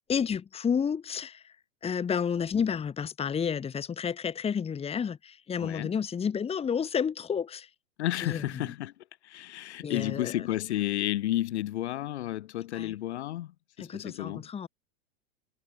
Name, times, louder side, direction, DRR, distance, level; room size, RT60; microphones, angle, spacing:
voice 1, 0.1-1.4 1.8-7.7 8.2-8.7 9.8-10.3 12.7-12.9 13.8-14.7, left 7 dB, 15° left, 1.7 m, -31 dB
voice 2, 5.6-5.9 8.0-8.9 9.2-14.5, left 14 dB, 75° left, 2.9 m, -32 dB
hypercardioid pair, 115°, 34 cm